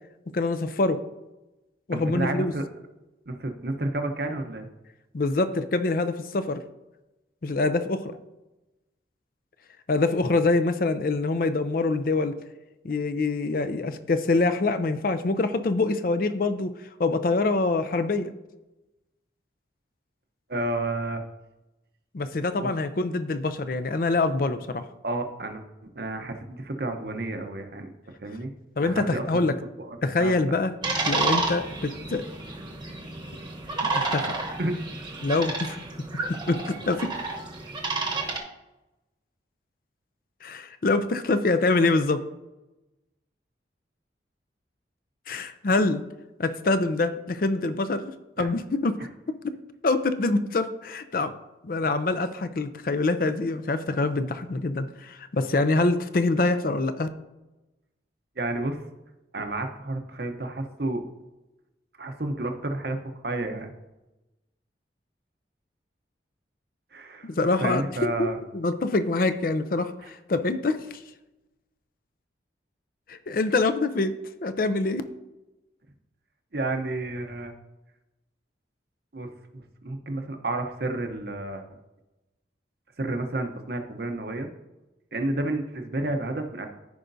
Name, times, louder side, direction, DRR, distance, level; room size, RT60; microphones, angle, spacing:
voice 1, 0.3-1.0 1.9-2.5 5.1-6.6 7.4-8.1 9.9-12.3 12.8-16.7 17.0-18.3 22.1-24.9 28.8-29.5 30.0-30.7 31.0-32.2 33.8-34.3 35.2-35.8 36.5-37.1 40.4-42.2 45.3-46.0 46.4-49.0 49.3-49.5 49.8-51.3 51.6-57.1 67.2-68.3 68.5-71.0 73.1-74.1 74.4-75.0, left 3 dB, 50° left, 10 dB, 0.5 m, -25 dB
voice 2, 1.9-2.6 3.3-4.7 20.5-21.2 22.6-22.7 25.0-25.6 25.9-27.9 28.2-28.5 28.8-29.4 29.8-30.4 34.6-34.8 48.4-48.5 58.4-58.8 59.3-61.0 62.0-63.0 63.2-63.7 66.9-67.3 67.6-68.4 70.0-70.1 76.5-77.5 79.1-81.6 83.0-84.5 85.1-86.7, right 2 dB, 55° right, 5 dB, 0.8 m, -31 dB
sound 1, 30.8-38.4, right 3 dB, 25° right, 1.0 m, -30 dB
14.0 x 5.0 x 2.7 m, 1.0 s
head